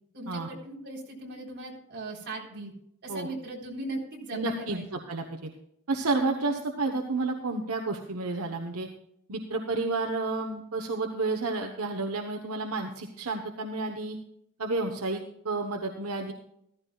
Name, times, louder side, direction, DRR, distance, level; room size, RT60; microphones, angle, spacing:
voice 1, 0.1-2.7 3.0-4.9, right 2 dB, 50° right, -2 dB, 3.9 m, -38 dB
voice 2, 4.3-5.5 5.9-8.9 9.3-14.2 14.6-16.3, right 3 dB, 80° right, 4 dB, 1.1 m, -31 dB
14.5 x 14.5 x 2.4 m, 0.74 s
head